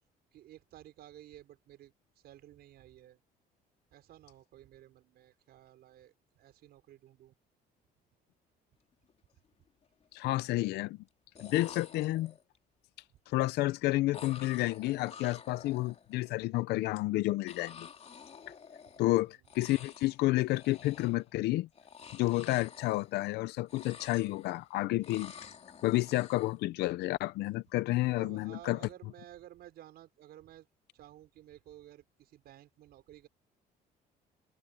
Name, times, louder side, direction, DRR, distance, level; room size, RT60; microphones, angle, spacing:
voice 1, 0.3-3.2 3.9-7.3 9.3-9.4 13.1-13.2 18.9-19.3 28.0-30.7 30.9-33.3, right 13 dB, 70° right, 5.9 m, -54 dB
sound 1, 8.9-9.1 9.5-10.1 11.1-11.2 11.4-12.6 14.1-16.3 17.5-19.2 19.4-20.2 20.5-21.3 21.7-23.4 23.6-24.7 25.0-26.6, left 6 dB, 40° left, 3.1 m, -50 dB
voice 2, 10.1-11.0 11.4-12.3 13.3-17.9 19.0-21.7 22.1-25.3 25.8-28.8, left 18 dB, 80° left, 0.6 m, -30 dB
open air
cardioid pair, 110°, 17 cm